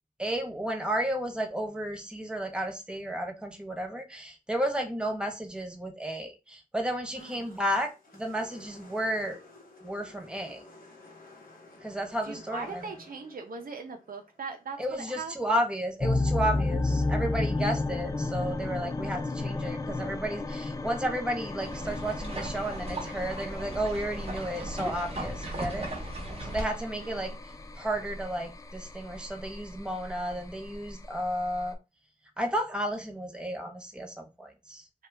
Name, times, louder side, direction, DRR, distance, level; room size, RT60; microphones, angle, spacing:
voice 1, 0.2-9.4 9.8-10.6 11.8-12.9 14.8-25.9 26.4-27.3 27.8-31.8 32.4-34.8, right 1 dB, 5° right, 2 dB, 0.8 m, -32 dB
sound 1, 7.2-15.5, left 2 dB, 90° left, 0.9 m, -54 dB
voice 2, 7.2-7.6 12.2-15.3 26.4-27.4, right 4 dB, 80° right, 3 dB, 0.6 m, -41 dB
sound 2, 16.0-31.7, left 2 dB, 25° left, 0.4 m, -33 dB
sound 3, 21.6-26.6, right 1 dB, 45° right, 1.0 m, -38 dB
2.8 x 2.3 x 3.2 m, 0.27 s
wide cardioid pair, 60°, 15 cm